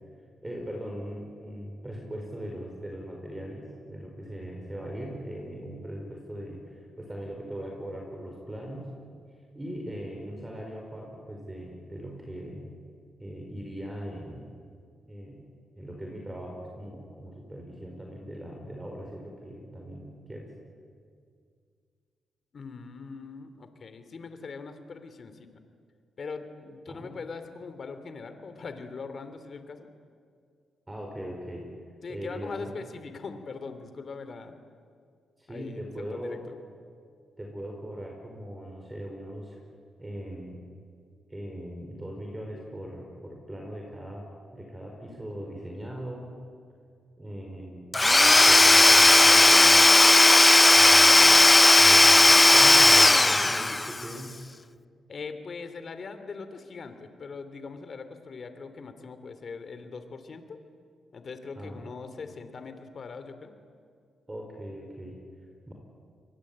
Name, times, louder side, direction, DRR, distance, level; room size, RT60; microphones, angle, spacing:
voice 1, 0.4-8.9 9.5-12.7 13.2-14.5 15.1-15.5 15.8-20.5 26.9-27.1 30.9-31.7 32.1-32.7 35.4-36.5 37.4-39.6 40.0-40.6 41.3-44.3 44.5-46.3 47.2-49.9 50.7-51.4 51.8-54.3 61.6-62.0 64.3-65.2 65.7-65.8, equal, 15° right, 0 dB, 5.2 m, -39 dB
voice 2, 22.5-25.5 26.2-29.8 32.0-34.5 35.5-36.4 55.1-60.6 61.1-63.5, left 4 dB, 50° left, 9 dB, 3.0 m, -41 dB
Domestic sounds home sounds / Tools, 47.9-54.0, left 2 dB, 20° left, 0.7 m, -16 dB
28.5 x 23.0 x 8.8 m, 2.2 s
cardioid pair, 90°, 0 cm